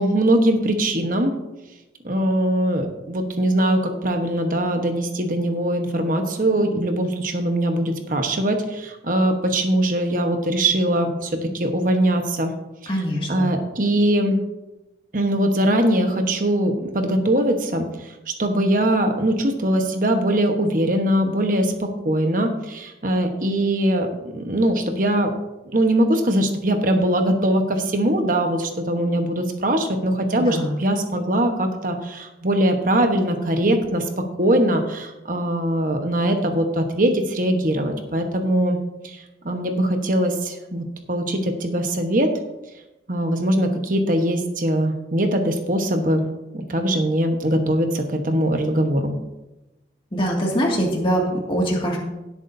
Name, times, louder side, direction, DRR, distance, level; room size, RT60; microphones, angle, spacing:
voice 1, 0.0-1.3 2.0-12.5 13.3-14.4 15.1-17.9 18.3-25.3 25.7-38.8 39.0-39.2 39.4-42.3 43.1-46.3 46.5-49.2, right 1 dB, 45° right, 5 dB, 1.2 m, -21 dB
voice 2, 12.9-13.5 30.3-30.8 50.1-52.0, equal, 30° left, -2 dB, 2.1 m, -23 dB
17.5 x 8.2 x 2.7 m, 0.99 s
head